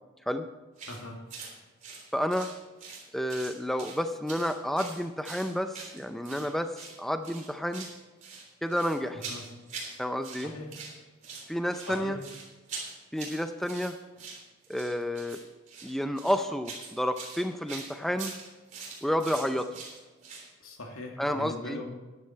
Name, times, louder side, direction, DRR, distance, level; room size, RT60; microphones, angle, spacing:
sound 1, 0.8-1.0 1.3-1.5 1.8-3.0 3.3-4.0 4.3-6.5 6.7-7.0 7.2-8.0 8.2-10.0 10.2-10.9 11.2-20.5, right 4 dB, 35° right, 3.3 m, -43 dB
voice 1, 0.9-1.3 9.1-9.5 10.4-10.7 11.7-12.2 20.6-21.9, left 1 dB, 80° left, 1 dB, 2.5 m, -41 dB
voice 2, 2.1-2.5 3.1-7.9 8.6-9.2 10.0-10.5 11.5-12.2 13.1-14.0 14.7-15.4 15.8-18.3 19.0-19.7 21.2-21.8, equal, ahead, 8 dB, 0.4 m, -30 dB
13.5 x 10.5 x 4.5 m, 1.2 s
head